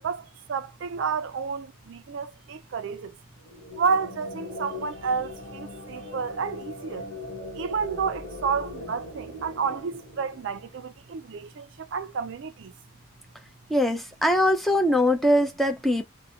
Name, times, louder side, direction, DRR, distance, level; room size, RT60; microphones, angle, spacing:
voice 1, 0.0-3.2 3.8-7.1 7.5-12.7, right 5 dB, 60° right, 0.4 m, -30 dB
sound 1, 3.4-10.9, left 2 dB, 35° left, 1.2 m, -40 dB
voice 2, 13.7-16.0, left 1 dB, ahead, 0.5 m, -22 dB
2.7 x 2.1 x 2.7 m
head